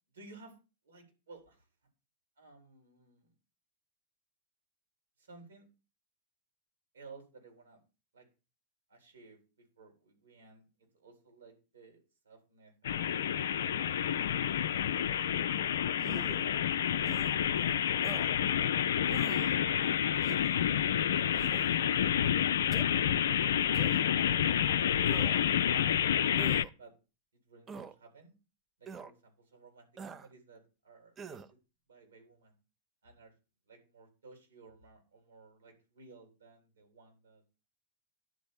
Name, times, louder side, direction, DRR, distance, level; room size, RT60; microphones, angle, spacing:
voice 1, 0.1-0.6 0.8-1.5 2.4-3.3 5.2-5.7 6.9-7.8 8.1-8.3 8.9-10.6 10.9-12.7 13.1-14.7 16.2-17.6 18.4-22.9 23.2-23.9 24.3-24.6 25.7-26.5 26.8-26.9 27.3-28.3 28.8-31.6 31.9-32.6 33.0-33.3 33.7-37.6, right 4 dB, 70° right, 3 dB, 3.9 m, -56 dB
sound 1, 12.8-26.6, left 9 dB, 60° left, 0.4 m, -29 dB
sound 2, 16.0-16.5 17.0-17.3 18.0-18.3 19.1-19.5 20.2-20.6 21.3-21.7 22.7-22.9 23.7-24.1 25.0-25.5 26.4-26.7 27.7-27.9 28.9-29.1 30.0-30.3 31.2-31.5, right 6 dB, 25° right, 0.6 m, -45 dB
11.0 x 4.2 x 7.1 m, 0.31 s
figure-of-eight pair, 90°, 0 cm